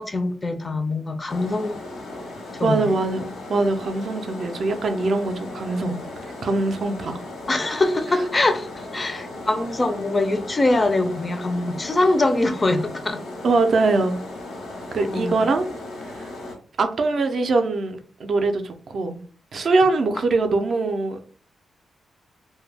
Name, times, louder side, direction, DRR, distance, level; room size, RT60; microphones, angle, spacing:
voice 1, 0.0-1.8 2.5-2.9 7.5-13.2 15.0-15.5, left 2 dB, 25° left, 0.3 m, -23 dB
sound 1, 1.3-16.6, left 2 dB, 80° left, 0.7 m, -37 dB
voice 2, 2.6-6.0 6.4-7.2 13.4-14.2 14.9-15.7 16.0-16.3 16.8-19.2 19.5-21.4, right 3 dB, 55° right, 0.4 m, -22 dB
2.1 x 2.1 x 3.2 m
wide cardioid pair, 125°, 0 cm